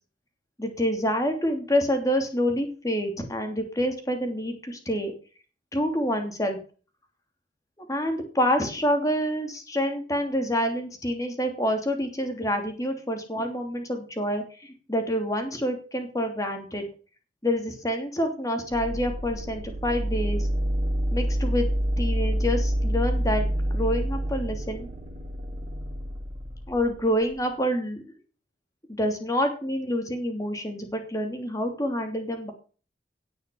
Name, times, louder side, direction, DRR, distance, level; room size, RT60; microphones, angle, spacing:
voice 1, 0.6-5.1 5.7-6.6 7.9-16.9 17.4-20.5 21.1-21.7 22.0-24.9 26.7-28.0 28.9-32.5, equal, 20° left, 5 dB, 2.9 m, -27 dB
sound 1, 18.7-27.4, equal, 35° right, 4.6 m, -28 dB
17.5 x 6.5 x 7.0 m, 0.38 s
head